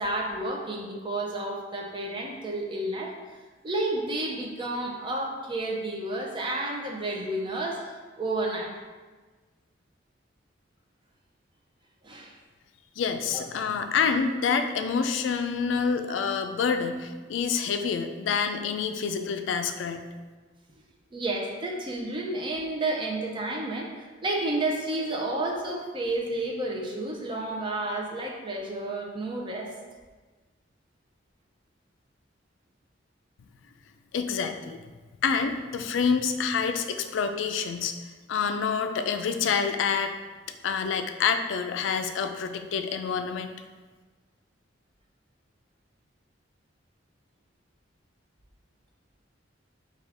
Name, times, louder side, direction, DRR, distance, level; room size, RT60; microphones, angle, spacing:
voice 1, 0.0-3.1 3.6-8.7 12.0-12.3 13.2-13.4 21.1-29.7, right 2 dB, 25° right, -1 dB, 0.5 m, -31 dB
voice 2, 13.0-20.1 34.1-34.8 35.2-37.9 38.3-40.1 40.6-43.5, left 6 dB, 80° left, 7 dB, 0.3 m, -27 dB
4.9 x 2.3 x 3.4 m, 1.3 s
head